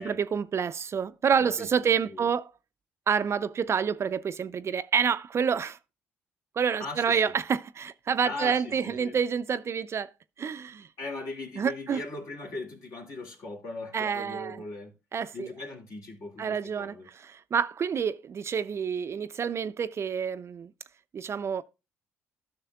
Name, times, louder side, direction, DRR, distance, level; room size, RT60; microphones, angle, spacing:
voice 1, 0.0-2.5 3.1-5.8 6.6-10.1 10.4-10.9 11.6-12.0 13.9-14.6 15.1-15.5 16.4-20.7 21.1-21.6, right 7 dB, 40° right, 0.4 m, -28 dB
voice 2, 1.4-2.3 6.8-7.3 8.2-9.2 11.0-14.9 15.3-17.1, left 2 dB, 55° left, 2.5 m, -39 dB
13.0 x 6.2 x 2.3 m
hypercardioid pair, 50°, 7 cm